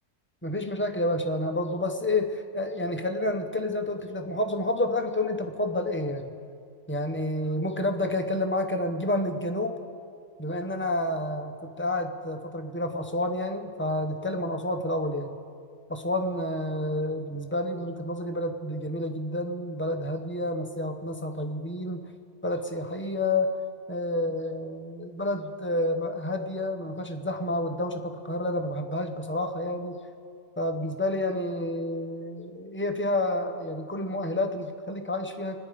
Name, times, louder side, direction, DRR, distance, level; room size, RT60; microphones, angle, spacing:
voice 1, 0.4-6.3 6.9-9.8 10.4-15.3 15.9-22.0 22.4-23.6 23.9-30.0 30.6-35.6, left 1 dB, 10° left, 5 dB, 0.6 m, -29 dB
25.0 x 10.0 x 5.0 m, 2.3 s
omnidirectional pair, 1.5 m